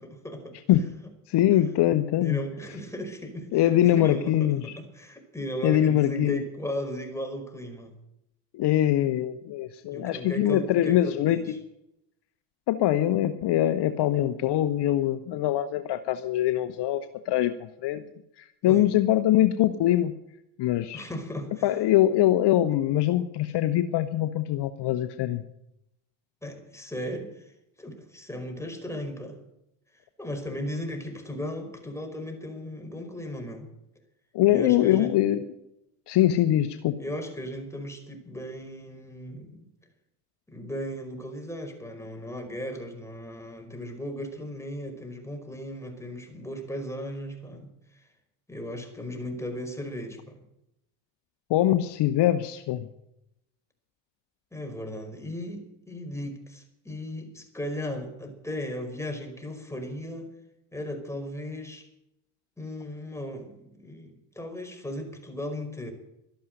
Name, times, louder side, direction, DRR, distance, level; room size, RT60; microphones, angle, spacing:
voice 1, 0.1-0.6 1.5-1.6 2.2-8.0 9.9-11.6 18.6-18.9 20.9-21.7 22.1-22.2 26.4-27.5 27.8-29.4 30.2-33.7 34.5-35.1 37.0-39.7 40.5-48.1 48.5-50.4 54.5-60.3 60.7-61.9 62.6-65.9, equal, 5° left, 3 dB, 5.1 m, -36 dB
voice 2, 1.3-2.4 3.5-4.7 5.6-6.4 8.5-11.4 12.7-18.0 18.4-20.1 20.6-21.0 21.6-25.4 34.3-35.4 36.1-37.0 51.5-52.9, left 13 dB, 60° left, 10 dB, 1.1 m, -23 dB
13.0 x 11.5 x 7.9 m, 0.83 s
hypercardioid pair, 65°, 47 cm